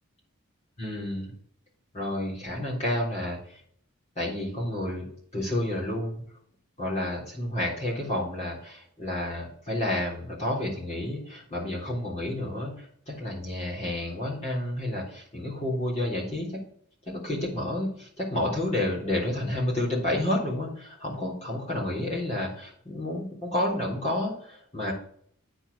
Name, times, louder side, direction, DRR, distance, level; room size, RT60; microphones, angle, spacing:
voice 1, 0.8-1.3 1.9-3.4 4.2-5.1 5.3-6.2 6.8-16.6 17.1-24.9, left 1 dB, 30° left, -5 dB, 3.5 m, -30 dB
9.0 x 4.6 x 6.8 m, 0.62 s
head